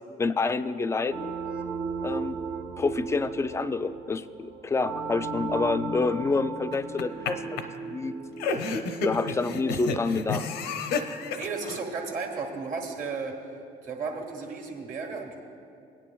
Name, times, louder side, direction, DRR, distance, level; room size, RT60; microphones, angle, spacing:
voice 1, 0.2-1.4 2.0-2.4 2.8-8.2 9.0-10.5, left 3 dB, 15° left, 11 dB, 0.3 m, -28 dB
sound 1, 1.1-11.5, right 4 dB, 70° right, 0.9 m, -36 dB
sound 2, 6.7-7.3 7.6-7.7 8.4-11.8, left 4 dB, 85° left, 0.7 m, -30 dB
voice 2, 11.4-13.3 13.8-15.4, right 4 dB, 50° right, 2 dB, 1.7 m, -34 dB
17.5 x 9.8 x 2.3 m, 2.5 s
cardioid pair, 110°, 17 cm